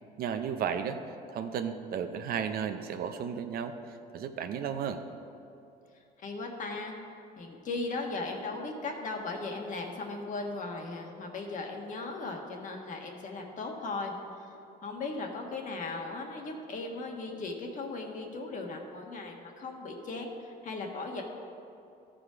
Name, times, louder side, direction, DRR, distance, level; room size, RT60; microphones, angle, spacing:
voice 1, 0.2-5.0, right 7 dB, 60° right, 8 dB, 0.7 m, -34 dB
voice 2, 6.2-6.9 7.4-14.5 14.8-21.2, left 3 dB, 50° left, 2 dB, 1.4 m, -37 dB
13.5 x 5.0 x 5.0 m, 2.7 s
cardioid pair, 110°, 17 cm